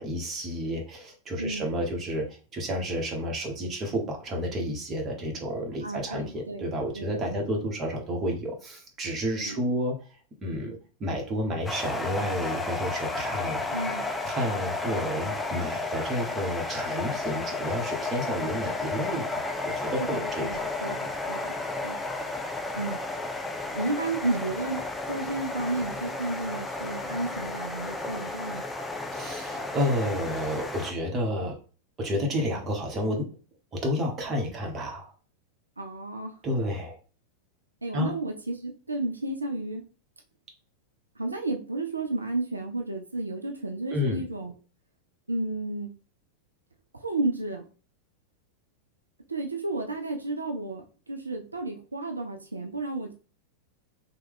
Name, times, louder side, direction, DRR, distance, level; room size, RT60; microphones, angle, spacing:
voice 1, 0.0-9.9 10.4-13.6 14.2-20.7 29.1-31.6 32.0-33.3 33.7-35.1 36.4-37.0 37.9-38.1 43.9-44.2, equal, 25° right, 1 dB, 1.0 m, -30 dB
voice 2, 1.4-1.8 5.8-7.6 9.4-9.6 13.7-14.0 20.0-21.5 21.8-22.0 22.7-23.0 23.7-28.6 35.8-36.4 37.8-39.8 41.2-44.5 45.3-46.0 46.9-47.6 49.3-53.1, right 2 dB, 80° right, 4 dB, 0.4 m, -32 dB
sound 1, 11.7-30.9, left 2 dB, 10° left, 0.4 m, -33 dB
3.1 x 2.2 x 3.5 m, 0.37 s
figure-of-eight pair, 90°, 0 cm